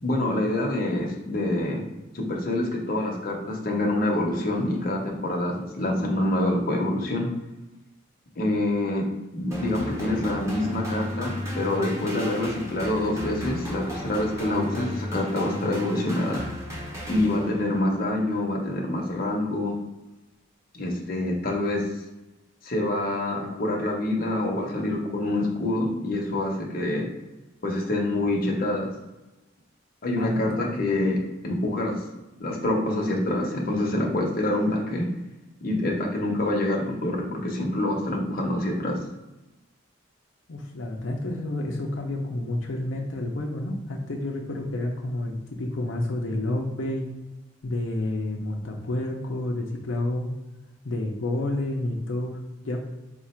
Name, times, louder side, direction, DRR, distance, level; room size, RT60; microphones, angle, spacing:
voice 1, 0.0-1.8 2.1-7.3 8.4-9.0 9.3-16.4 17.1-19.7 20.7-21.8 22.6-27.1 27.6-28.9 30.0-31.2 31.4-32.0 32.4-35.0 35.6-39.0, left 1 dB, 50° left, -1 dB, 0.8 m, -26 dB
sound 1, 9.5-17.8, equal, 15° right, 0.8 m, -35 dB
voice 2, 30.1-30.8 40.5-47.1 47.6-50.3 50.8-52.8, left 1 dB, 85° left, 0 dB, 0.6 m, -30 dB
3.8 x 2.5 x 4.3 m, 1.1 s
head